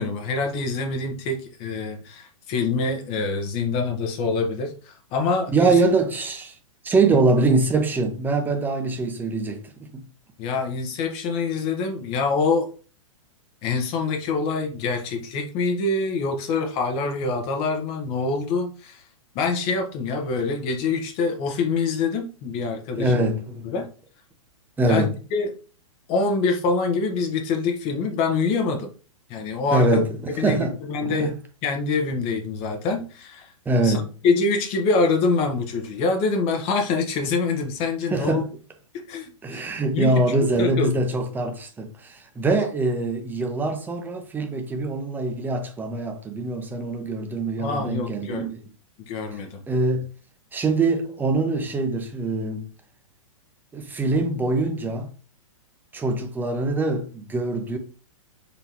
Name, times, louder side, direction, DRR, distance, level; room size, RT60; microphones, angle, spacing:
voice 1, 0.0-5.7 10.4-12.7 13.6-19.0 19.3-23.3 23.6-23.9 24.8-25.5 26.1-28.9 29.3-30.0 30.4-31.3 31.6-33.5 33.8-38.4 39.1-39.7 39.9-40.2 40.6-40.9 47.6-48.5 49.1-49.6, left 4 dB, 35° left, 1.0 m, -25 dB
voice 2, 5.5-6.5 6.8-10.0 23.0-23.7 24.8-25.1 29.7-30.7 31.0-31.3 33.7-34.1 38.1-38.5 39.4-48.6 49.7-50.1 50.5-52.7 53.7-55.1 55.9-57.8, right 2 dB, 10° right, 0.8 m, -23 dB
4.0 x 3.6 x 2.9 m
hypercardioid pair, 125°, 17 cm